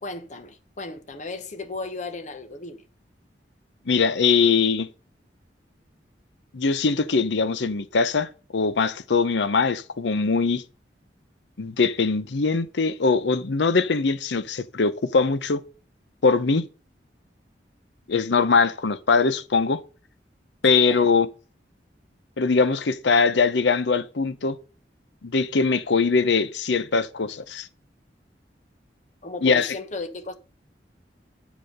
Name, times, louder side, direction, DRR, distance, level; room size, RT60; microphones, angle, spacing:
voice 1, 0.0-2.8 20.9-21.2 29.2-30.3, left 3 dB, 45° left, 1.1 m, -35 dB
voice 2, 3.9-4.9 6.5-10.6 11.6-15.6 16.2-16.6 18.1-19.8 20.6-21.3 22.4-24.6 25.2-27.7 29.4-29.7, left 4 dB, 80° left, 0.7 m, -22 dB
7.9 x 5.0 x 5.2 m
head